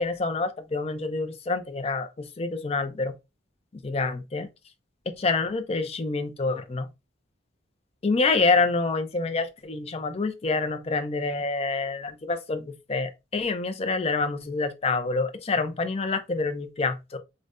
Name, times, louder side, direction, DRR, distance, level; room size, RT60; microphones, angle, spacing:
voice 1, 0.0-2.1 2.4-3.1 3.9-4.5 5.2-6.9 8.0-17.2, left 3 dB, 30° left, 0.5 m, -27 dB
4.9 x 2.1 x 2.5 m
head